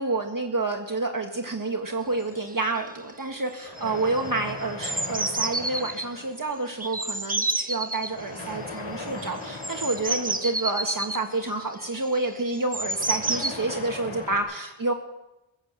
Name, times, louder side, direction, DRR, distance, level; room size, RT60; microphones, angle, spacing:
voice 1, 0.0-14.9, right 2 dB, 40° right, 3 dB, 1.6 m, -29 dB
sound 1, 1.9-3.1 3.6-6.7 8.1-11.5 12.6-14.4, left 3 dB, 80° left, 4.6 m, -39 dB
sound 2, 2.2-2.3 2.5-2.9 3.2-3.5 3.8-6.1 6.8-8.1 9.2-13.5, right 2 dB, 15° right, 1.3 m, -30 dB
15.5 x 10.0 x 7.5 m, 0.97 s
cardioid pair, 45°, 49 cm